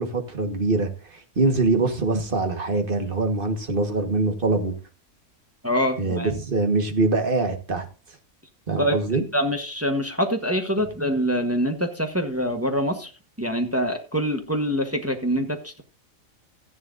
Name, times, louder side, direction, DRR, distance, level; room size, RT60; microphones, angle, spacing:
voice 1, 0.0-4.7 6.0-7.9 8.7-9.2, right 3 dB, 40° right, 6 dB, 1.5 m, -23 dB
voice 2, 5.6-6.3 8.8-13.1 13.4-15.8, equal, 10° right, 4 dB, 1.1 m, -25 dB
14.0 x 10.5 x 2.5 m, 0.34 s
omnidirectional pair, 1.4 m